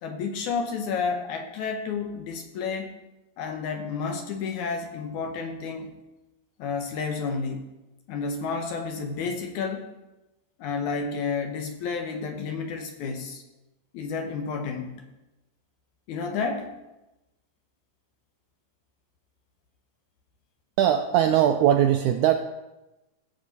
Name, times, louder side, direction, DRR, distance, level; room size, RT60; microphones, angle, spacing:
voice 1, 0.0-2.9 3.4-5.9 6.6-7.6 8.1-9.9 10.6-13.4 13.9-15.1 16.1-16.7, left 5 dB, 70° left, 4 dB, 2.1 m, -31 dB
voice 2, 20.8-22.3, right 10 dB, 80° right, 6 dB, 1.7 m, -20 dB
14.5 x 7.4 x 4.1 m, 0.99 s
omnidirectional pair, 4.0 m